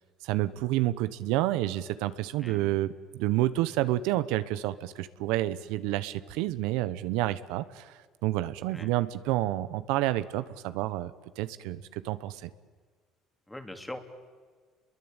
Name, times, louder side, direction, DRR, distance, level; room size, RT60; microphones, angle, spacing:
voice 1, 0.2-11.1 11.4-12.5, right 15 dB, 90° right, 13 dB, 1.0 m, -29 dB
voice 2, 2.4-2.8 8.7-8.9 13.5-14.0, left 1 dB, 5° left, 6 dB, 2.8 m, -41 dB
29.5 x 22.5 x 9.0 m, 1.5 s
cardioid pair, 125°, 0 cm